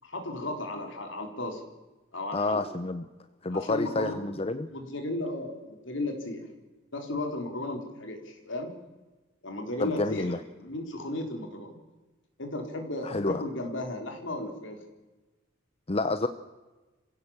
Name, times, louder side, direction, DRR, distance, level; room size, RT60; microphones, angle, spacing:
voice 1, 0.0-1.6 2.1-2.6 3.5-4.2 4.7-6.5 6.9-8.7 9.4-11.8 12.4-14.8, left 1 dB, 65° left, 4 dB, 4.0 m, -35 dB
voice 2, 2.3-3.1 3.4-4.7 9.8-10.4 13.0-13.4 15.9-16.3, left 2 dB, 30° left, 11 dB, 0.7 m, -29 dB
27.0 x 16.5 x 7.3 m, 1.2 s
head